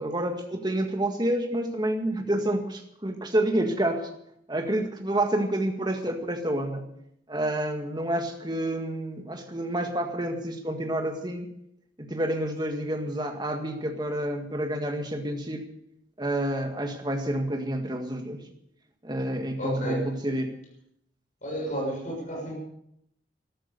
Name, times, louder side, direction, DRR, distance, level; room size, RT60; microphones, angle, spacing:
voice 1, 0.0-4.1 4.5-6.8 7.3-11.5 12.0-15.7 16.2-18.4 19.0-20.5, right 1 dB, 25° right, 4 dB, 1.8 m, -29 dB
voice 2, 19.6-20.1 21.4-22.5, equal, 45° left, -1 dB, 6.7 m, -31 dB
13.5 x 13.0 x 6.8 m, 0.75 s
head